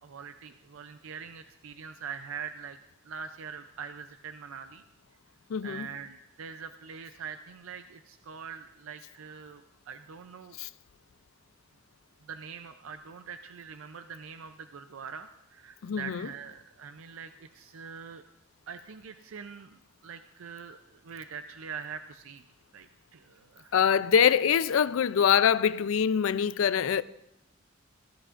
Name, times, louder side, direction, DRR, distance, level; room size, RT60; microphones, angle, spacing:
voice 1, 0.0-2.8 3.0-4.8 5.6-10.6 12.3-18.2 18.7-20.8 21.0-22.4 22.7-23.7, right 6 dB, 85° right, 0.5 m, -43 dB
voice 2, 5.5-5.9 10.6-10.7 15.8-16.3 23.7-27.0, left 7 dB, 80° left, 0.4 m, -24 dB
16.0 x 15.5 x 2.5 m
head